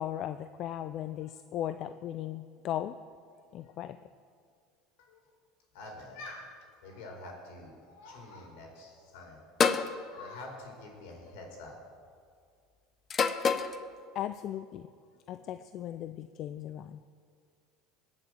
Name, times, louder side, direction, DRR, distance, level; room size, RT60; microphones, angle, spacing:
voice 1, 0.0-2.9 3.5-4.0 14.1-14.9 15.3-17.0, left 11 dB, 50° left, 11 dB, 0.5 m, -37 dB
voice 2, 5.7-9.4 10.0-11.8, left 2 dB, 75° left, 1 dB, 4.9 m, -47 dB
sound 1, 9.6-9.9 11.1-11.5 13.1-13.8, left 5 dB, 30° left, 0.9 m, -27 dB
20.5 x 7.4 x 7.9 m, 2.2 s
supercardioid pair, 105°, 0 cm